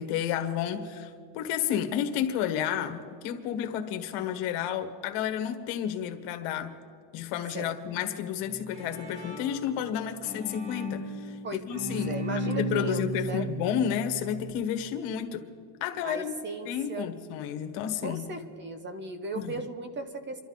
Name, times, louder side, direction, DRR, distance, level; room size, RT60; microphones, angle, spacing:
voice 1, 0.0-6.7 7.1-12.1 12.6-15.4 15.8-16.3 16.6-18.3 19.3-19.6, left 9 dB, 80° left, 7 dB, 1.5 m, -31 dB
Bowed string instrument, 8.4-14.5, right 1 dB, 85° right, 3.9 m, -35 dB
voice 2, 12.0-13.5 16.0-17.1 18.0-20.4, right 2 dB, 25° right, 9 dB, 0.7 m, -37 dB
28.5 x 12.5 x 4.0 m, 2.2 s
cardioid pair, 175°, 49 cm